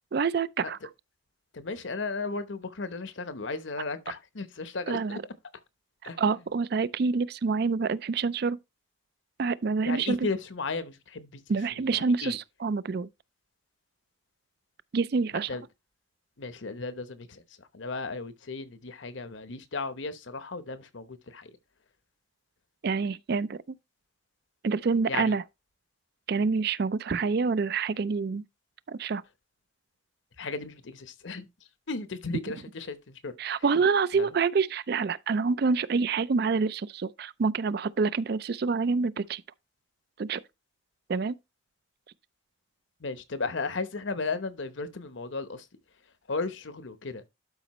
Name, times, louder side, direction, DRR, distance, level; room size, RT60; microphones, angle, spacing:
voice 1, 0.1-0.8 4.9-5.2 6.0-8.6 9.4-10.3 11.5-13.1 14.9-15.5 22.8-23.8 24.6-25.4 26.3-28.4 28.9-29.2 33.4-39.4 40.2-40.4 41.1-41.4, right 4 dB, 50° right, 0.4 m, -27 dB
voice 2, 1.5-5.2 6.0-6.2 9.9-11.4 11.8-12.4 15.5-15.6 16.4-21.5 25.1-25.3 30.4-31.4 31.9-33.3 34.1-34.3 43.0-45.6 46.3-47.2, left 3 dB, 70° left, 0.9 m, -35 dB
12.0 x 5.0 x 3.0 m
head